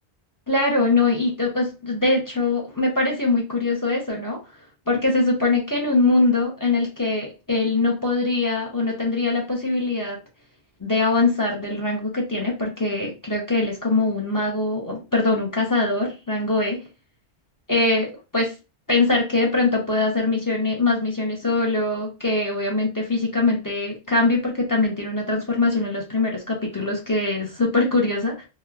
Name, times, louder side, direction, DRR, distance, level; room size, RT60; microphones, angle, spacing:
voice 1, 0.5-4.4 4.9-10.2 10.8-16.8 17.7-18.5 18.9-28.5, left 2 dB, 25° left, -1 dB, 0.5 m, -22 dB
3.0 x 2.2 x 2.3 m, 0.29 s
omnidirectional pair, 1.1 m